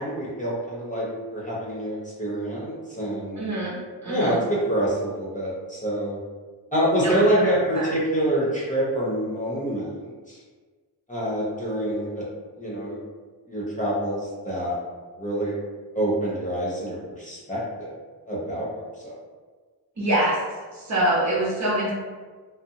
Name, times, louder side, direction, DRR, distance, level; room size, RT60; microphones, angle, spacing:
voice 1, 0.0-3.5 4.0-6.2 6.7-10.4 11.1-12.2 12.6-13.0 13.5-14.8 15.2-15.5 15.9-18.0 18.3-18.7 19.0-19.1, right 1 dB, 20° left, -7 dB, 0.7 m, -26 dB
voice 2, 3.4-4.4 7.0-7.9 20.0-20.4 20.7-21.9, right 1 dB, 40° right, -6 dB, 0.9 m, -25 dB
2.6 x 2.0 x 2.7 m, 1.4 s
cardioid pair, 75°, 42 cm